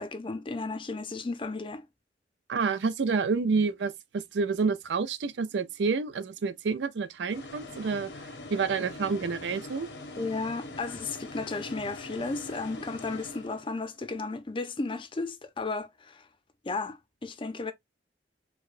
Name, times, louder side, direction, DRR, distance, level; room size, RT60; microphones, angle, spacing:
voice 1, 0.0-1.9 10.2-16.3 16.6-17.7, left 3 dB, 30° left, 0.5 m, -34 dB
voice 2, 2.5-8.1 8.5-9.9, right 4 dB, 85° right, 0.4 m, -28 dB
sound 1, 7.3-14.0, left 2 dB, 80° left, 0.9 m, -43 dB
4.6 x 2.1 x 2.4 m
head